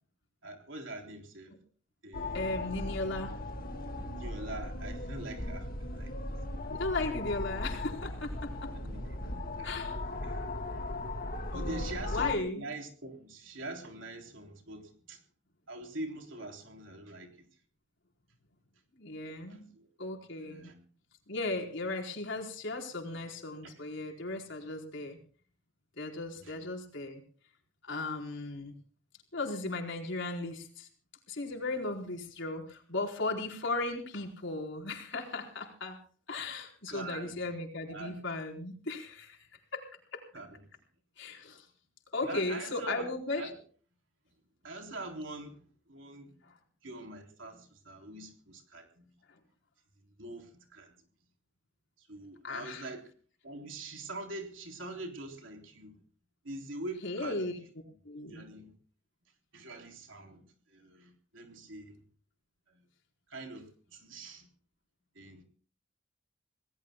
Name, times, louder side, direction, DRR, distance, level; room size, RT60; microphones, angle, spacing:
voice 1, 0.4-1.5 2.0-2.5 4.0-6.3 8.7-9.8 10.2-10.4 11.5-15.2 15.7-17.5 19.5-19.9 20.3-20.8 23.6-23.8 26.4-26.6 36.9-37.4 37.9-38.1 40.3-40.6 42.2-43.1 43.4-43.6 44.6-46.3 46.8-49.1 50.0-50.9 52.0-53.0 53.4-56.0 56.4-57.5 57.9-58.0 58.3-58.7 59.5-62.0 62.7-62.8 63.3-64.5 65.2-65.4, right 2 dB, 70° right, 3.7 m, -44 dB
sound 1, 2.1-12.3, left 2 dB, 50° left, 1.9 m, -37 dB
voice 2, 2.3-3.4 6.7-8.7 9.6-10.0 11.5-12.6 18.9-19.7 20.0-20.7 21.3-25.2 26.0-27.2 27.8-28.7 29.3-30.9 31.3-36.0 36.3-39.5 39.7-39.8 40.1-40.2 41.2-41.7 42.1-43.5 52.4-52.9 57.0-57.6 58.0-58.4, left 2 dB, 65° left, 4.4 m, -36 dB
27.5 x 19.0 x 2.3 m
head